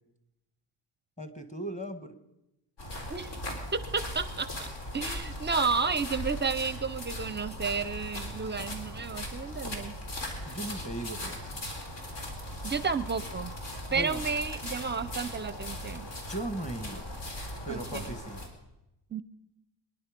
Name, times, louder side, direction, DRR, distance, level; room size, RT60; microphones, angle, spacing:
voice 1, 1.2-2.2 10.5-11.4 13.9-14.2 16.3-17.1 17.6-18.4, right 1 dB, 15° left, 10 dB, 1.7 m, -37 dB
sound 1, 2.8-18.5, left 1 dB, 70° left, 3.8 m, -39 dB
voice 2, 3.7-4.7 4.9-9.9 12.6-13.5 13.9-16.1 17.7-18.1 19.1-19.2, right 5 dB, 25° right, 15 dB, 0.5 m, -32 dB
26.0 x 10.5 x 5.2 m, 0.90 s
cardioid pair, 120°, 43 cm